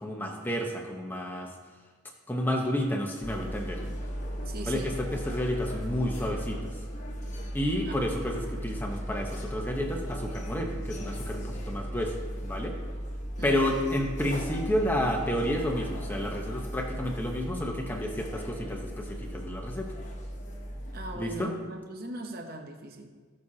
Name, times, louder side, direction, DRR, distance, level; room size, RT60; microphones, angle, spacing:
voice 1, 0.0-1.5 2.3-3.8 4.7-6.7 7.5-12.1 12.4-12.8 13.4-19.9 21.1-21.5, left 1 dB, 10° left, 1 dB, 1.0 m, -30 dB
sound 1, 3.2-21.2, equal, 35° left, 1.2 m, -36 dB
voice 2, 4.5-4.9 7.9-8.0 13.4-13.8 20.9-23.1, right 2 dB, 45° right, 4 dB, 0.9 m, -39 dB
18.5 x 6.4 x 2.9 m, 1.5 s
head